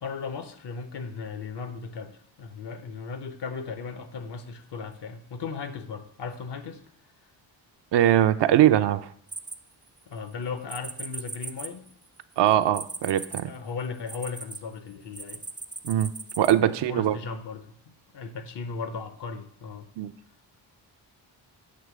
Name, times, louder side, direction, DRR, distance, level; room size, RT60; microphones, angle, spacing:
voice 1, 0.0-6.8 10.1-11.9 13.4-15.4 16.6-19.9, left 5 dB, 60° left, 11 dB, 0.9 m, -36 dB
voice 2, 7.9-9.0 12.4-13.5 15.8-17.2 20.0-20.1, right 11 dB, 60° right, 10 dB, 0.5 m, -21 dB
sound 1, 9.3-10.1 10.7-14.6 15.1-16.5, right 3 dB, 10° right, 0.3 m, -38 dB
7.8 x 3.0 x 6.1 m, 0.64 s
supercardioid pair, 60°, 46 cm